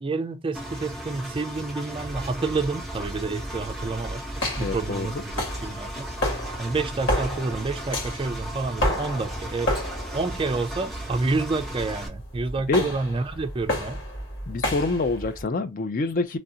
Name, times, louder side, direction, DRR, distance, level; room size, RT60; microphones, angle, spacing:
voice 1, 0.0-4.2 4.6-5.9 6.6-9.7 10.1-14.0, right 3 dB, 25° right, 0.3 m, -29 dB
Engine, 0.5-12.1, right 1 dB, ahead, 0.8 m, -37 dB
sound 1, 2.1-15.4, equal, 65° left, 1.7 m, -32 dB
voice 2, 4.6-5.1 12.7-12.9 14.5-16.4, left 3 dB, 45° left, 0.4 m, -26 dB
3.1 x 2.5 x 2.7 m
head